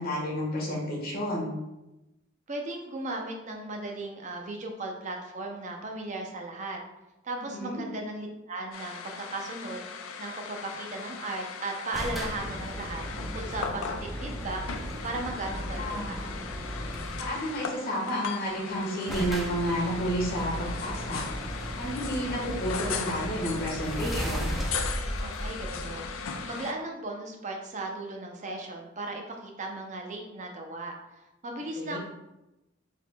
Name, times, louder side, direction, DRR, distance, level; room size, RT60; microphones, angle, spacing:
voice 1, 0.0-1.5 7.5-7.8 15.8-16.1 17.2-21.2 21.7-24.5 31.8-32.0, equal, 50° left, -4 dB, 1.4 m, -31 dB
voice 2, 2.5-6.8 7.2-9.8 10.2-14.6 15.0-16.2 25.2-26.1 26.4-30.9 31.4-32.0, right 2 dB, 40° right, 2 dB, 0.7 m, -36 dB
sound 1, 8.7-26.7, left 6 dB, 90° left, 0.4 m, -38 dB
sound 2, 11.9-17.5 18.5-18.6 18.7-18.8 19.1-26.6, equal, ahead, 0.6 m, -36 dB
4.9 x 3.5 x 2.3 m, 0.94 s
head